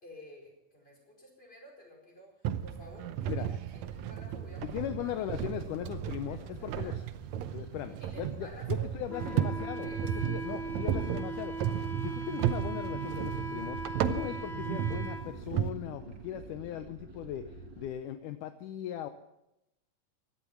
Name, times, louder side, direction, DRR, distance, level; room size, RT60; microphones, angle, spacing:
voice 1, 0.0-5.2 5.5-7.0 8.0-9.5 9.8-10.0, left 1 dB, 15° left, 0 dB, 4.7 m, -53 dB
sound 1, 2.4-15.7, right 10 dB, 75° right, 1.7 m, -34 dB
sound 2, 3.9-17.9, right 3 dB, 45° right, 1.6 m, -49 dB
voice 2, 4.6-6.9 7.5-11.5 12.0-17.5 17.8-19.1, left 11 dB, 75° left, 9 dB, 2.1 m, -38 dB
Wind instrument woodwind instrument, 9.1-15.3, right 2 dB, 25° right, 1.3 m, -39 dB
16.5 x 12.0 x 7.2 m, 0.87 s
omnidirectional pair, 4.0 m